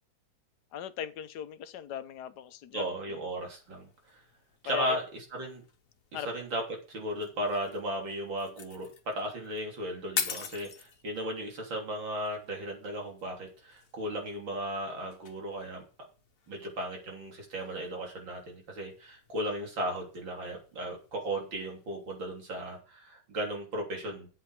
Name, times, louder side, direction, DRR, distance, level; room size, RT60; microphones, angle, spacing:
voice 1, 0.7-3.2 4.6-5.0 6.1-6.3, left 10 dB, 65° left, 1.3 m, -39 dB
voice 2, 2.7-3.9 4.6-5.0 5.3-5.6 6.3-6.6 6.9-15.8 16.5-24.3, right 1 dB, 70° right, 3.8 m, -35 dB
sound 1, 3.4-22.8, left 6 dB, 45° left, 1.5 m, -46 dB
9.7 x 8.1 x 4.7 m
omnidirectional pair, 2.1 m